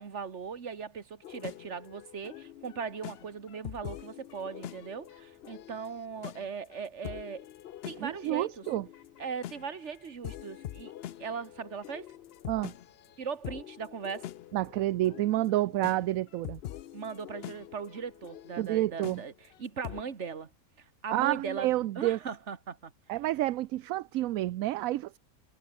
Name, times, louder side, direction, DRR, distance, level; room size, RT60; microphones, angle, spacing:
voice 1, 0.0-7.5 7.9-8.6 9.2-10.9 11.2-12.1 13.2-14.3 16.9-20.5 20.8-22.9, right 6 dB, 50° right, 1.8 m, -39 dB
sound 1, 1.2-20.0, left 12 dB, 80° left, 0.5 m, -45 dB
voice 2, 8.0-8.9 12.5-12.7 14.5-16.6 18.6-19.2 21.1-22.2 23.1-25.2, right 15 dB, 70° right, 0.9 m, -29 dB
omnidirectional pair, 1.6 m